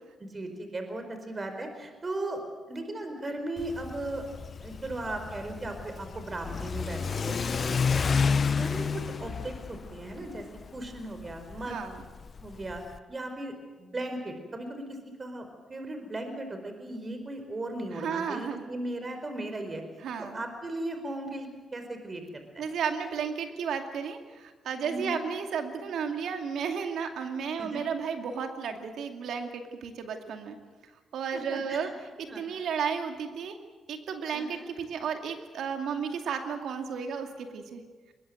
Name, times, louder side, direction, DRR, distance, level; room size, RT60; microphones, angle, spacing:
voice 1, 0.2-2.4 2.7-4.2 4.6-8.0 8.5-10.4 10.7-11.8 12.4-12.8 13.1-15.4 15.7-19.8 20.2-22.6 24.8-25.2 27.6-27.9 31.3-31.9 32.2-32.4 34.3-34.7, right 1 dB, 35° right, 6 dB, 4.7 m, -37 dB
Car / Accelerating revving vroom, 3.6-13.0, left 5 dB, 50° left, 1.0 m, -31 dB
voice 2, 11.7-12.0 17.9-18.7 20.0-20.4 22.6-30.6 31.1-31.9 32.2-33.6 33.9-37.8, right 6 dB, 75° right, 5 dB, 2.4 m, -33 dB
21.0 x 21.0 x 7.9 m, 1.4 s
supercardioid pair, 60°, 0 cm